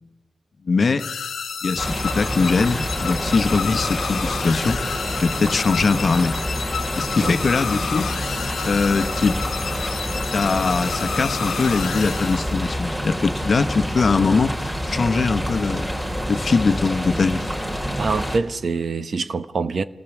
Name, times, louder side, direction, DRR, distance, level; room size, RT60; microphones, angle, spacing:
voice 1, 0.6-1.1 1.6-4.8 5.2-6.4 7.0-8.1 8.6-9.4 10.3-14.6 14.9-15.9 16.3-17.5, left 4 dB, 45° left, 1.0 m, -21 dB
sound 1, 1.0-12.9, left 6 dB, 90° left, 1.3 m, -30 dB
sound 2, 1.8-18.4, equal, 10° right, 2.7 m, -27 dB
voice 2, 18.0-19.8, right 4 dB, 50° right, 0.9 m, -25 dB
27.5 x 18.5 x 7.2 m
wide cardioid pair, 145°, 0 cm